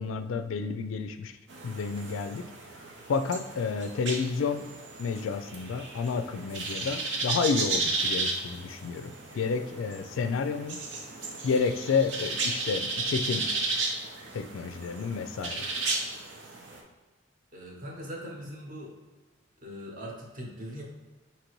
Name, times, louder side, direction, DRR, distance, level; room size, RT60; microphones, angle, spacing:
voice 1, 0.0-1.3 1.6-2.4 3.1-4.7 5.0-10.8 11.4-13.5 14.3-15.7, left 5 dB, 90° left, 9 dB, 0.3 m, -30 dB
sound 1, 1.5-16.8, right 3 dB, 75° right, 0.7 m, -34 dB
voice 2, 17.5-18.9 19.6-20.8, equal, 45° right, -1 dB, 0.9 m, -40 dB
5.2 x 2.9 x 3.0 m, 1.2 s
head